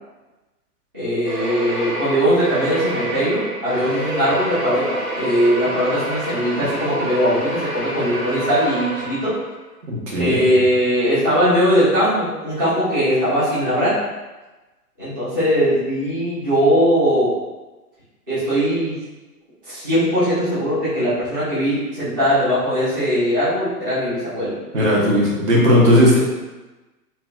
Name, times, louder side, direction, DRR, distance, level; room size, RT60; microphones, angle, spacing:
voice 1, 0.9-9.3 10.2-13.9 15.0-17.3 18.3-18.9 19.6-24.5 25.9-26.2, equal, 15° right, -15 dB, 0.3 m, -20 dB
sound 1, 1.2-9.5, right 1 dB, 80° right, 0.9 m, -27 dB
voice 2, 9.9-10.5 24.7-26.2, equal, 50° right, -4 dB, 0.8 m, -16 dB
2.5 x 2.2 x 2.3 m, 1.1 s
figure-of-eight pair, 115°, 47 cm